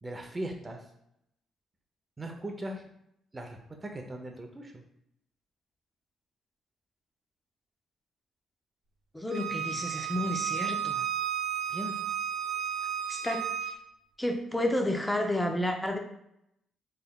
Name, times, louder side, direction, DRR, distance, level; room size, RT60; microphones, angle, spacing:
voice 1, 0.0-0.9 2.2-2.9 3.3-4.8 11.7-12.1, right 1 dB, 20° right, 3 dB, 0.7 m, -39 dB
voice 2, 9.1-11.0 13.1-13.7 14.2-16.0, left 1 dB, 10° left, 3 dB, 0.6 m, -31 dB
Bowed string instrument, 9.3-13.7, right 9 dB, 60° right, 0.6 m, -33 dB
3.6 x 3.4 x 2.3 m, 0.75 s
cardioid pair, 90°, 0 cm